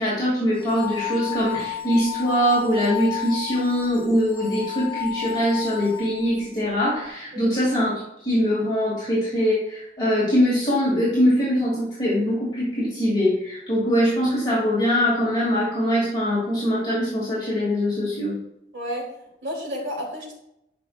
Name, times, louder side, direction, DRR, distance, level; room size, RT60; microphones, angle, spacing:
voice 1, 0.0-7.9 8.2-18.4, equal, 25° left, -8 dB, 2.8 m, -22 dB
sound 1, 0.6-6.4, left 11 dB, 10° left, 2.3 m, -33 dB
voice 2, 19.4-20.3, equal, 80° right, -3 dB, 3.3 m, -31 dB
11.5 x 5.9 x 2.6 m, 0.81 s
head